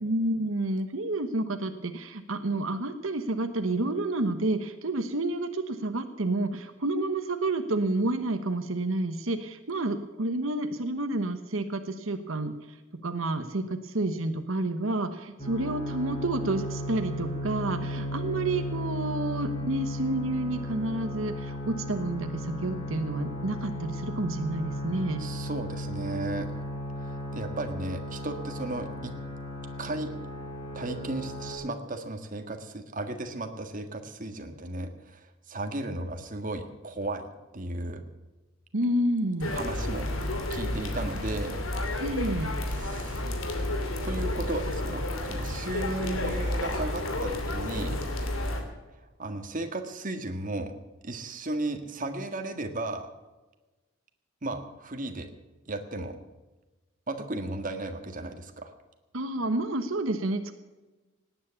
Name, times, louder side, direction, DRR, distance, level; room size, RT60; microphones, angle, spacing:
voice 1, 0.0-12.6 13.0-25.2 38.7-39.6 42.0-42.6 59.1-60.5, right 2 dB, 80° right, 8 dB, 1.1 m, -29 dB
sound 1, 15.4-31.5, left 1 dB, 25° left, 5.6 m, -35 dB
voice 2, 25.2-26.5 27.0-29.1 29.8-30.1 30.7-38.0 39.5-40.1 40.5-41.6 42.6-43.2 44.0-48.0 49.2-50.7 51.0-53.1 54.4-55.3 55.7-56.2 57.1-58.7, right 2 dB, 40° right, 6 dB, 1.6 m, -35 dB
sound 2, 39.4-48.6, left 1 dB, 80° left, 2.8 m, -31 dB
18.5 x 9.5 x 7.0 m, 1.2 s
head